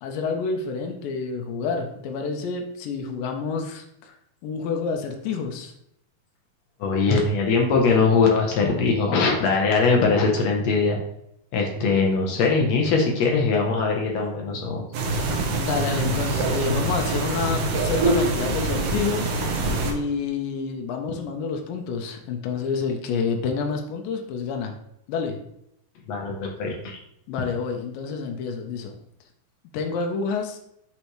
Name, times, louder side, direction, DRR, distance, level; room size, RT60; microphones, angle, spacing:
voice 1, 0.0-4.2 4.4-5.7 15.6-19.3 19.9-24.7 25.1-25.4 27.3-28.9 29.7-30.6, left 5 dB, 85° left, 3 dB, 2.4 m, -28 dB
voice 2, 6.8-11.0 11.5-14.8 26.1-27.0, left 4 dB, 70° left, 1 dB, 1.7 m, -21 dB
sound 1, 14.9-19.9, right 2 dB, 70° right, 1.5 m, -24 dB
8.2 x 4.1 x 3.1 m, 0.77 s
omnidirectional pair, 3.9 m